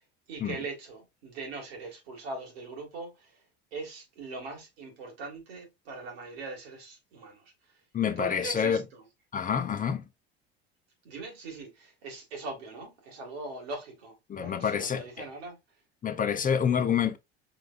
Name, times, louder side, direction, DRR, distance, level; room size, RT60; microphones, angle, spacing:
voice 1, 0.3-3.4 3.7-7.5 8.0-9.0 11.0-15.6, right 3 dB, 80° right, 2.0 m, -41 dB
voice 2, 7.9-8.8 9.3-10.0 14.3-15.3 16.0-17.2, left 7 dB, 25° left, 0.7 m, -27 dB
4.9 x 3.4 x 2.5 m
hypercardioid pair, 75°, 30 cm